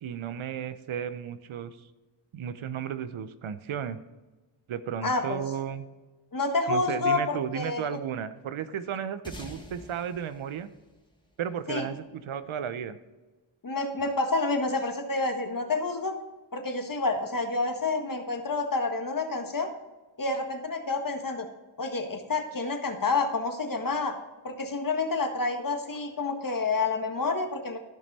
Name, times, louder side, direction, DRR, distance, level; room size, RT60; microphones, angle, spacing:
voice 1, 0.0-1.8 2.3-4.0 4.7-5.9 6.7-10.7 11.4-13.0, right 8 dB, 80° right, 12 dB, 0.8 m, -34 dB
voice 2, 5.0-5.4 6.3-7.8 11.7-11.9 13.6-16.1 16.5-19.7 20.2-21.5 21.8-24.2 24.4-27.8, left 3 dB, 45° left, 5 dB, 1.5 m, -28 dB
sound 1, 9.2-12.0, equal, 10° left, 1.8 m, -47 dB
14.0 x 5.4 x 4.2 m, 1.2 s
cardioid pair, 70°, 47 cm